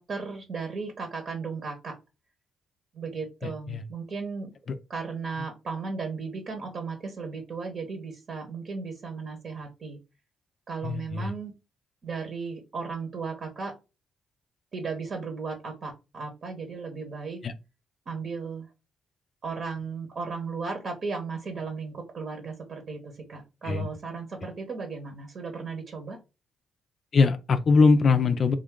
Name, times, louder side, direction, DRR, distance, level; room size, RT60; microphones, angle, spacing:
voice 1, 0.0-1.9 2.9-4.5 4.9-10.0 10.7-11.5 12.0-13.7 14.7-17.4 18.1-18.7 19.4-26.2, right 4 dB, 50° right, 0.9 m, -35 dB
voice 2, 3.4-3.8 4.7-4.8 10.8-11.3 17.4-17.5 23.6-23.9 27.1-28.5, left 4 dB, 50° left, 0.4 m, -22 dB
3.6 x 2.5 x 3.6 m
cardioid pair, 90°, 0 cm